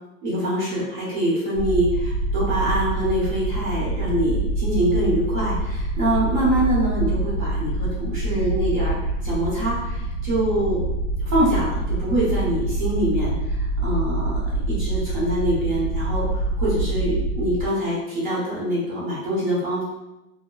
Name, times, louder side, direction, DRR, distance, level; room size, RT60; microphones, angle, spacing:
voice 1, 0.2-8.9 9.2-10.8 11.3-19.8, right 1 dB, 35° right, -7 dB, 1.1 m, -24 dB
sound 1, 1.5-17.7, right 2 dB, 45° left, 0.4 m, -26 dB
2.8 x 2.2 x 2.3 m, 0.96 s
supercardioid pair, 175°, 40 cm